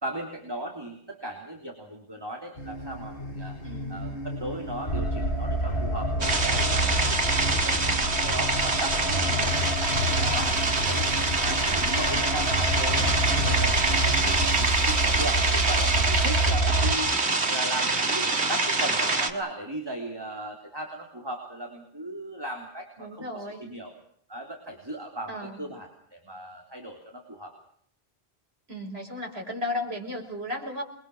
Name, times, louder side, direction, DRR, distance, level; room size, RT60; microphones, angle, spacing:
voice 1, 0.0-3.6 3.9-9.5 9.8-13.2 13.4-23.9 24.3-27.5, right 1 dB, 20° right, 1 dB, 3.4 m, -37 dB
sound 1, 2.6-14.7, equal, 60° left, 2.9 m, -36 dB
voice 2, 3.6-4.1 10.2-10.6 14.5-14.7 23.0-23.6 25.3-25.6 28.7-30.8, left 1 dB, 70° right, 1 dB, 6.1 m, -35 dB
sound 2, 4.9-16.9, right 1 dB, 75° left, 3.0 m, -28 dB
sound 3, 6.2-19.3, right 3 dB, 90° right, 2.3 m, -25 dB
28.0 x 22.5 x 6.2 m, 0.65 s
omnidirectional pair, 1.1 m